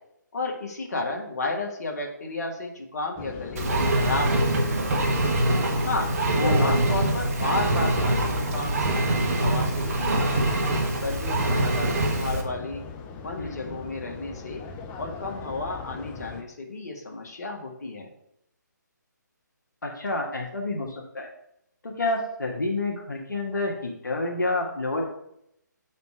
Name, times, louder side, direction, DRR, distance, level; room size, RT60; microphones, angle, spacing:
voice 1, 0.3-5.0 5.8-6.1 6.4-10.5 11.0-12.8 13.2-14.6 15.0-18.1, left 2 dB, 55° left, 1 dB, 1.6 m, -32 dB
sound 1, 3.2-16.4, left 4 dB, 15° left, 0.4 m, -39 dB
Engine, 3.6-12.4, right 1 dB, 50° right, 1.2 m, -24 dB
voice 2, 6.3-6.8 13.4-13.8 19.8-21.3 21.8-25.0, left 2 dB, 75° left, 0 dB, 1.5 m, -29 dB
5.4 x 4.2 x 6.2 m, 0.76 s
figure-of-eight pair, 145°, 10 cm